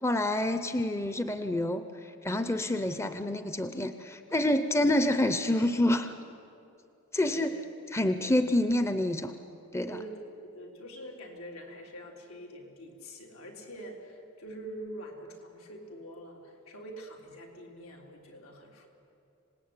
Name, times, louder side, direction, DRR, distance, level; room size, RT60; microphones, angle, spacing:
voice 1, 0.0-6.1 7.1-7.5 7.9-9.3 9.7-10.0, left 1 dB, 10° left, 9 dB, 0.7 m, -28 dB
voice 2, 7.3-7.6 8.2-8.4 9.8-18.9, right 1 dB, 85° left, 0 dB, 3.8 m, -45 dB
26.5 x 19.0 x 8.8 m, 2.7 s
head